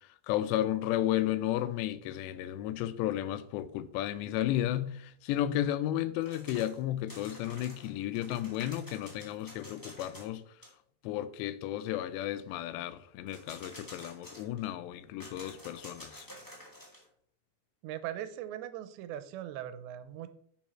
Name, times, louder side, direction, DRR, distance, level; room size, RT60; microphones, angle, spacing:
voice 1, 0.3-10.4 11.0-16.3, left 12 dB, 85° left, 2.8 m, -33 dB
sound 1, 6.2-6.8 7.1-10.4 10.6-10.7 13.3-14.7 15.2-17.1, equal, 5° left, 1.6 m, -50 dB
voice 2, 17.8-20.3, right 11 dB, 90° right, 2.9 m, -40 dB
10.5 x 6.3 x 4.4 m
omnidirectional pair, 5.0 m